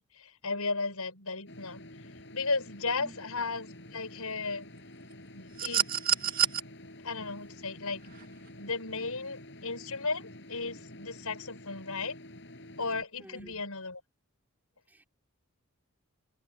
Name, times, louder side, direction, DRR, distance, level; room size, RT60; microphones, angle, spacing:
voice 1, 0.0-1.8 2.3-4.7 5.3-5.9 7.0-8.0 8.6-12.2 12.8-14.0, left 3 dB, 85° left, 7.2 m, -35 dB
sound 1, 1.5-13.0, left 1 dB, 55° left, 8.0 m, -49 dB
sound 2, 5.6-6.6 8.1-8.2, right 10 dB, 40° right, 2.4 m, -27 dB
voice 2, 13.2-13.6 14.9-15.0, equal, 10° right, 3.5 m, -50 dB
head